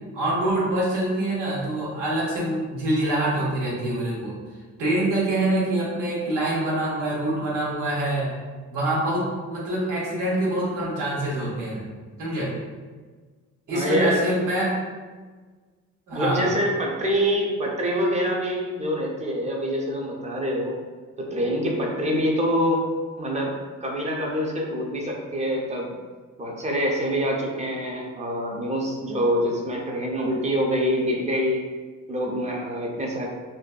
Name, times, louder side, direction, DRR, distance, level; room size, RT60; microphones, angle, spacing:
voice 1, 0.1-4.3 4.8-8.3 8.7-11.9 12.2-12.5 13.7-14.7 16.1-16.5, right 1 dB, 90° right, -5 dB, 0.9 m, -25 dB
voice 2, 13.7-14.3 16.1-20.8 21.2-22.8 23.2-23.5 23.8-25.9 26.4-31.6 32.1-33.3, equal, 25° right, -1 dB, 0.5 m, -25 dB
2.6 x 2.1 x 2.3 m, 1.4 s
cardioid pair, 90°, 30 cm